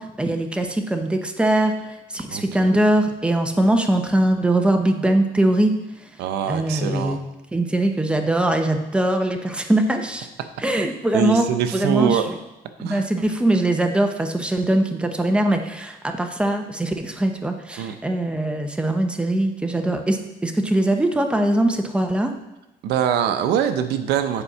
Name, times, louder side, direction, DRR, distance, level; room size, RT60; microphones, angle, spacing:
voice 1, 0.0-1.8 2.1-5.8 6.5-7.2 7.5-10.3 10.6-11.4 11.7-12.2 12.8-22.3, right 1 dB, 5° right, 5 dB, 0.9 m, -21 dB
voice 2, 2.3-2.9 6.2-7.2 11.1-12.3 12.8-13.0 17.8-17.9 22.8-24.4, right 9 dB, 80° right, 9 dB, 0.7 m, -23 dB
9.9 x 4.4 x 5.6 m, 0.95 s
cardioid pair, 110°, 17 cm